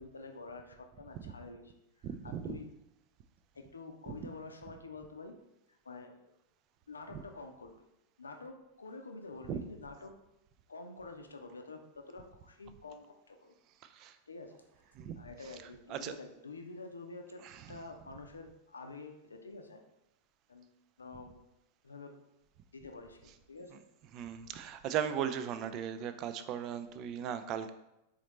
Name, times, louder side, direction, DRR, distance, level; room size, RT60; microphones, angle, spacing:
voice 1, 0.0-1.7 2.0-2.7 3.5-5.4 5.8-6.3 6.9-7.9 8.2-10.2 10.7-13.6 14.3-14.6 15.2-19.8 20.5-21.4 21.8-22.2 22.7-23.8, left 3 dB, 75° left, 5 dB, 0.5 m, -48 dB
voice 2, 2.0-2.6 7.1-7.2 9.5-9.6 13.9-14.1 15.0-15.2 15.9-16.1 17.4-17.8 24.1-27.7, right 9 dB, 40° right, 10 dB, 0.3 m, -37 dB
4.1 x 3.9 x 3.0 m, 0.89 s
figure-of-eight pair, 90°, 0 cm